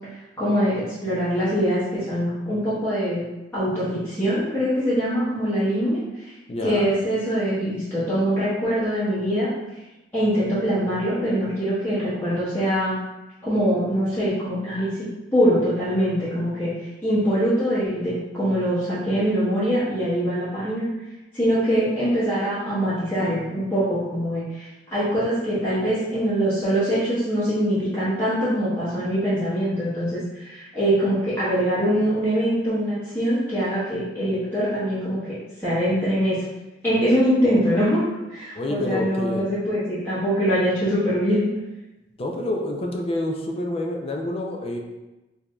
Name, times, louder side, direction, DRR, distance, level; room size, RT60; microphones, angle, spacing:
voice 1, 0.4-3.2 3.5-6.3 6.6-9.5 10.1-13.0 13.4-14.9 15.3-16.7 17.0-20.9 21.3-36.4 36.8-38.0 38.3-41.5, equal, 10° left, -13 dB, 1.2 m, -23 dB
voice 2, 6.5-6.9 38.6-39.5 42.2-44.8, left 1 dB, 35° left, 2 dB, 0.4 m, -27 dB
4.7 x 2.7 x 2.3 m, 1.0 s
head